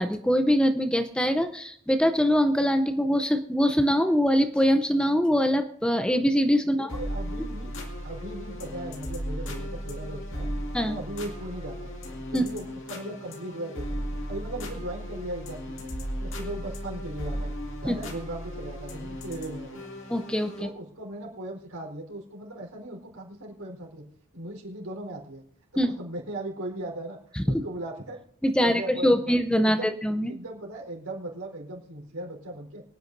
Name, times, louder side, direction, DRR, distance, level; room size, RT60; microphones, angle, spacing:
voice 1, 0.0-6.9 10.7-11.0 12.3-12.4 17.8-18.0 20.1-20.7 25.8-26.0 27.4-27.6 28.4-30.3, equal, 5° left, 8 dB, 0.6 m, -23 dB
voice 2, 6.6-7.7 8.0-10.5 10.9-11.9 12.3-17.5 17.8-19.8 20.6-24.0 24.3-25.4 25.7-27.2 27.4-28.2 28.6-29.4 29.6-29.9 30.3-32.8, right 1 dB, 80° right, -1 dB, 4.2 m, -38 dB
sound 1, 6.9-20.7, equal, 60° left, 2.1 m, -36 dB
24.5 x 9.4 x 2.6 m, 0.64 s
head